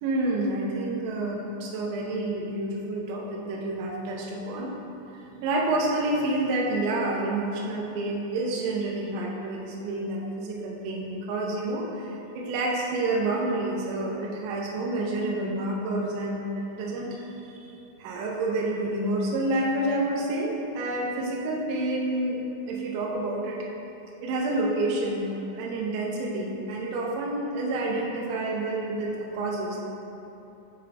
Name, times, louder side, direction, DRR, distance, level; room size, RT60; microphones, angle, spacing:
voice 1, 0.0-4.7 5.4-17.1 18.0-22.4 22.7-23.7 24.2-29.8, right 2 dB, 80° right, -3 dB, 2.9 m, -28 dB
8.6 x 3.7 x 3.4 m, 2.9 s
omnidirectional pair, 5.8 m